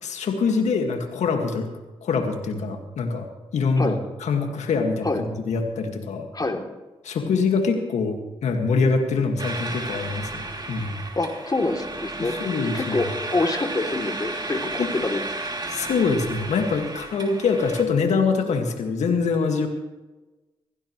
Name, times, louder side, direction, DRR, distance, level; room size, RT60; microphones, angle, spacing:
voice 1, 0.0-1.7 2.0-3.3 3.5-6.3 7.0-10.9 12.2-13.1 14.8-14.9 15.7-19.7, left 4 dB, 75° left, 4 dB, 1.9 m, -24 dB
sound 1, 9.4-17.8, right 2 dB, 35° right, 3.0 m, -33 dB
voice 2, 11.1-12.3 12.7-15.2, left 2 dB, 35° left, 2 dB, 3.0 m, -26 dB
23.0 x 15.5 x 3.2 m, 1.1 s
supercardioid pair, 40°, 12 cm